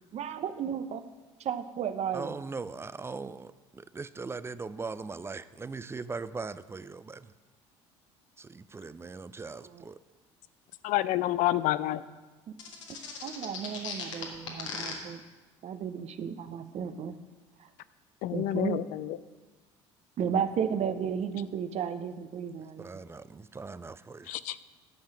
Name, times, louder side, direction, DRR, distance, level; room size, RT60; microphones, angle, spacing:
voice 1, 0.1-1.0 1.4-2.4 13.2-15.2 15.6-17.1 18.3-18.9 20.2-23.0, right 8 dB, 45° right, 11 dB, 0.7 m, -33 dB
voice 2, 2.1-7.3 8.4-9.9 22.8-24.3, right 4 dB, 15° right, 15 dB, 0.4 m, -40 dB
voice 3, 10.8-12.0 18.2-19.2 24.3-24.6, left 14 dB, 60° left, 15 dB, 0.4 m, -28 dB
sound 1, 12.6-14.9, left 6 dB, 85° left, 1.6 m, -37 dB
10.5 x 5.6 x 6.2 m, 1.3 s
hypercardioid pair, 65°, 15 cm